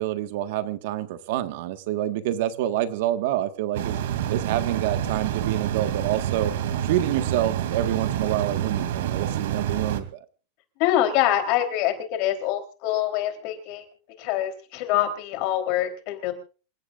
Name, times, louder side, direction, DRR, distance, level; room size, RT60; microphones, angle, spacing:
voice 1, 0.0-4.0 4.3-6.5 6.8-10.2, right 13 dB, 55° right, 9 dB, 1.6 m, -27 dB
sound 1, 3.7-10.0, right 10 dB, 75° right, 2.7 m, -27 dB
voice 2, 10.8-13.8 14.2-16.3, left 12 dB, 40° left, 6 dB, 3.7 m, -25 dB
28.0 x 16.0 x 2.5 m, 0.37 s
supercardioid pair, 175°, 0 cm